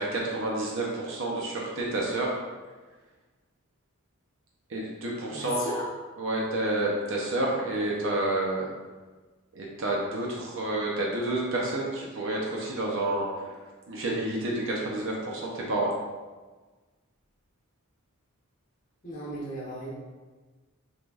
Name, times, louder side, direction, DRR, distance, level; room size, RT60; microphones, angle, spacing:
voice 1, 0.0-2.3 4.7-5.7 6.2-8.7 9.5-13.3 13.9-15.9, right 2 dB, 60° right, -3 dB, 0.8 m, -29 dB
voice 2, 5.3-5.9 19.0-19.9, equal, 35° left, -8 dB, 0.9 m, -35 dB
5.6 x 3.4 x 2.5 m, 1.3 s
head